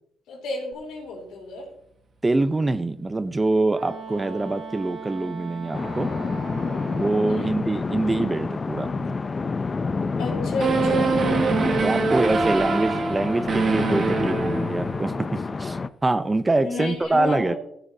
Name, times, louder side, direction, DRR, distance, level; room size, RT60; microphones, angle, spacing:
voice 1, 0.3-1.7 7.2-7.6 10.2-11.2 16.6-17.6, left 3 dB, 85° left, 0 dB, 3.3 m, -32 dB
voice 2, 2.2-6.1 6.9-9.1 11.4-17.6, right 2 dB, 20° right, 13 dB, 0.5 m, -25 dB
Wind instrument woodwind instrument, 3.7-7.4, right 5 dB, 70° right, 1.6 m, -39 dB
sound 1, 5.7-15.9, left 4 dB, 30° left, 0.4 m, -28 dB
sound 2, 10.6-15.2, right 4 dB, 50° right, 1.3 m, -24 dB
14.5 x 6.9 x 2.7 m, 0.74 s
cardioid pair, 90°, 0 cm